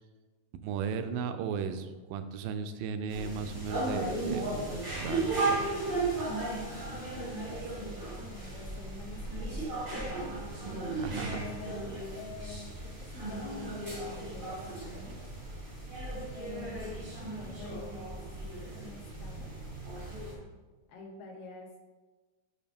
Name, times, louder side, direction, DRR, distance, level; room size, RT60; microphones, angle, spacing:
voice 1, 0.6-4.6 4.9-5.6 10.9-11.4, right 6 dB, 85° right, 9 dB, 2.2 m, -36 dB
sound 1, 3.1-20.3, right 2 dB, 50° right, 0.5 m, -36 dB
voice 2, 6.6-10.8 11.2-15.3 16.3-18.2 18.7-19.5 20.9-21.7, left 4 dB, 85° left, 0 dB, 1.3 m, -48 dB
7.6 x 4.8 x 3.5 m, 1.3 s
omnidirectional pair, 4.0 m